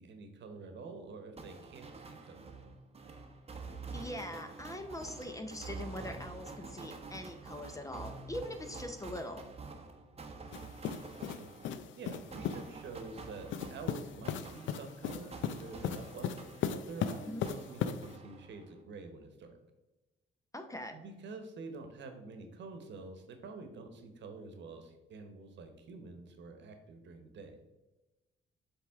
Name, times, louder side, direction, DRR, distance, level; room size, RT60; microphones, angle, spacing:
voice 1, 0.0-2.8 11.2-11.5 12.0-16.4 16.7-19.5 20.9-27.6, right 3 dB, 65° right, 6 dB, 1.0 m, -47 dB
sound 1, 1.4-17.1 17.4-18.8, right 4 dB, 30° right, 0.8 m, -48 dB
voice 2, 3.9-9.5 17.3-17.5 20.5-21.0, left 1 dB, 15° left, 6 dB, 0.7 m, -42 dB
sound 2, 10.5-12.7 13.5-18.2, left 8 dB, 75° left, 0.4 m, -38 dB
7.5 x 3.5 x 3.6 m, 1.0 s
cardioid pair, 90°, 20 cm